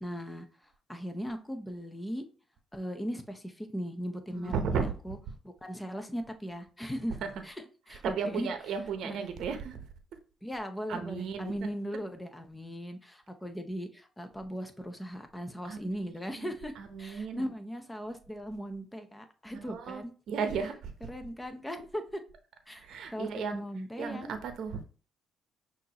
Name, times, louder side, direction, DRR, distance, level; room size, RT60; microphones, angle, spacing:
voice 1, 0.0-2.2 2.7-5.2 5.4-7.2 7.4-7.5 7.9-8.5 9.0-9.2 10.4-16.7 17.0-20.1 21.1-22.2 22.7-24.4, equal, 10° left, 0.8 m, -38 dB
voice 2, 4.3-4.9 7.2-7.3 7.9-9.8 10.9-11.5 15.6-16.5 16.8-17.5 19.5-20.9 22.7-23.6 24.0-24.8, right 6 dB, 70° right, 0.7 m, -35 dB
5.9 x 2.7 x 2.9 m
cardioid pair, 80°, 0 cm